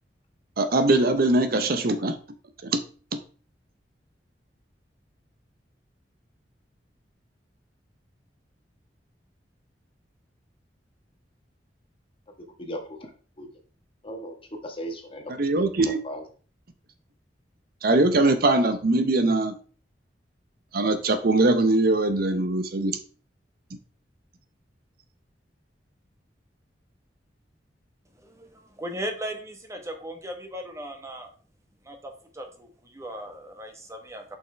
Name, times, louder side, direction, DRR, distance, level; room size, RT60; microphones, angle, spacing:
voice 1, 0.6-2.1 2.6-2.8 3.1-3.2 15.3-16.0 17.8-19.5 20.7-22.9, right 2 dB, 55° right, 0.7 m, -22 dB
voice 2, 12.6-13.1 13.4-13.5 14.0-14.3 14.6-15.3 15.6-16.2, equal, 30° left, 1.4 m, -37 dB
voice 3, 28.2-31.3 31.9-34.2, equal, 15° right, 1.1 m, -37 dB
7.1 x 5.5 x 3.3 m
head